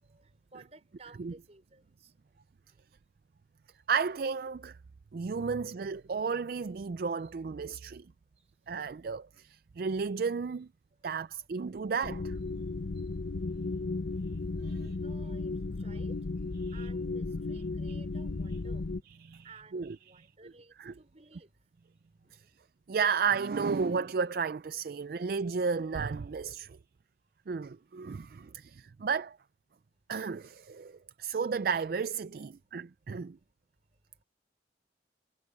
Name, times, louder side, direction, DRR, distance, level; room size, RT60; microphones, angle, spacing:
voice 1, 0.0-2.1 2.7-2.8 8.3-8.5 11.0-11.5 11.7-11.8 12.9-13.1 14.7-19.0 19.4-21.5 22.2-22.5 24.9-25.1, right 3 dB, 35° right, 4.8 m, -56 dB
voice 2, 3.9-4.8 5.1-8.1 8.7-10.7 11.0-12.3 14.6-14.9 16.6-16.7 19.2-19.4 19.7-20.0 20.8-20.9 22.3-22.4 22.9-26.8 27.5-29.4 30.1-33.4, right 5 dB, 55° right, 0.4 m, -33 dB
sound 1, 12.0-19.0, left 3 dB, 75° left, 0.7 m, -35 dB
head